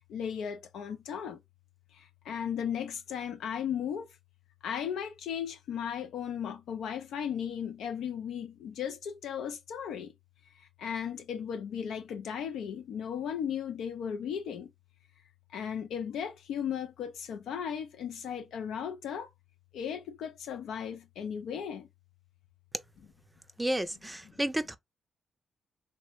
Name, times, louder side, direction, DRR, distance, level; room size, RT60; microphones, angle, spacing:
voice 1, 0.1-1.4 1.9-4.2 4.6-10.1 10.5-14.7 15.5-19.3 19.7-21.9 23.0-23.1 24.2-24.3, left 8 dB, 80° left, 0.3 m, -36 dB
voice 2, 23.6-24.8, right 1 dB, 15° right, 0.4 m, -31 dB
3.0 x 2.0 x 3.0 m
supercardioid pair, 45°, 0 cm